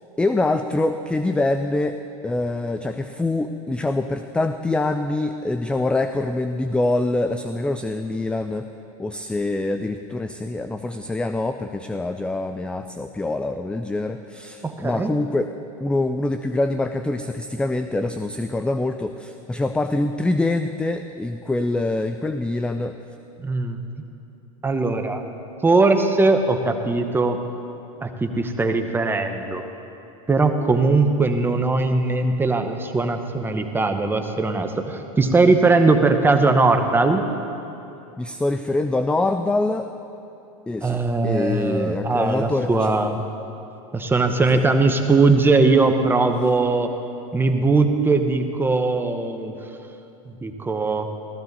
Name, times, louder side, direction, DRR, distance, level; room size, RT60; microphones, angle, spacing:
voice 1, 0.2-2.0 2.2-8.7 9.0-15.5 15.8-23.0 38.2-39.9 40.7-43.1 44.5-44.6, left 2 dB, 5° left, 8 dB, 0.3 m, -25 dB
voice 2, 14.6-15.1 23.4-23.8 24.6-25.2 25.6-27.4 28.0-29.7 30.3-37.2 40.8-43.2 43.9-46.9 47.3-49.5 50.3-51.1, right 3 dB, 10° right, 6 dB, 1.0 m, -20 dB
15.0 x 14.0 x 4.1 m, 2.8 s
hypercardioid pair, 105°, 18 cm